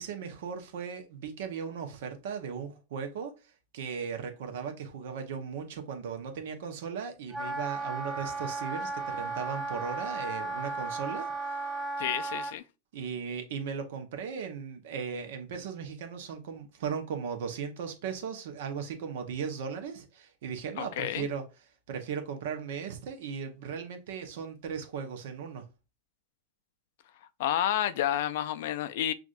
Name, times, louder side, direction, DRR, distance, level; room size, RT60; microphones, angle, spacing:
voice 1, 0.0-3.3 3.7-11.3 12.9-21.4 21.9-25.6, right 6 dB, 70° right, 0.9 m, -37 dB
Wind instrument woodwind instrument, 7.3-12.5, right 3 dB, 5° right, 1.3 m, -35 dB
voice 2, 12.0-12.6 20.8-21.3 27.4-29.1, left 11 dB, 65° left, 0.4 m, -30 dB
6.0 x 2.5 x 2.5 m
supercardioid pair, 130°, 0 cm